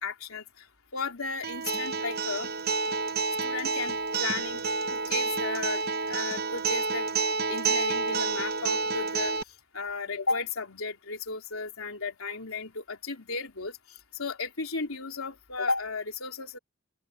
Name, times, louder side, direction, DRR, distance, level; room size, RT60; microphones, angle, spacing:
voice 1, 0.0-0.6 0.9-2.5 3.4-4.6 4.9-5.8 6.1-7.1 7.5-9.3 9.7-13.8 14.1-16.6, left 4 dB, 80° left, 3.4 m, -34 dB
Acoustic guitar, 1.4-9.4, right 4 dB, 45° right, 0.8 m, -29 dB
open air
head